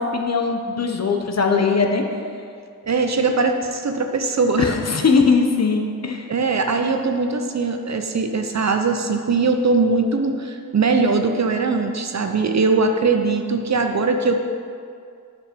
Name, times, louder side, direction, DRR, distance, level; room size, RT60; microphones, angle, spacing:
voice 1, 0.0-2.0 4.6-6.3, left 4 dB, 50° left, 3 dB, 0.8 m, -20 dB
voice 2, 2.8-4.8 6.3-14.4, right 4 dB, 50° right, 5 dB, 0.7 m, -21 dB
7.4 x 5.1 x 5.2 m, 2.3 s
wide cardioid pair, 75°, 35 cm